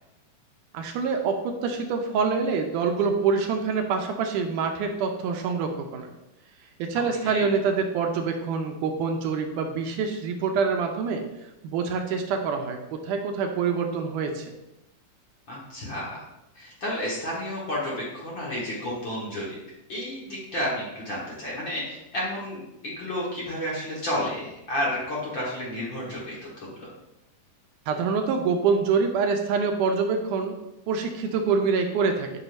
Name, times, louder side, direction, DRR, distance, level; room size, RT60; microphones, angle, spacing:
voice 1, 0.7-6.1 6.8-11.2 11.6-14.5 27.9-30.6 30.9-32.3, right 5 dB, 80° right, 4 dB, 2.1 m, -26 dB
voice 2, 6.9-7.5 15.5-16.2 16.6-19.6 19.9-26.9, left 1 dB, 45° left, -6 dB, 1.8 m, -31 dB
9.9 x 5.5 x 2.6 m, 0.90 s
omnidirectional pair, 3.8 m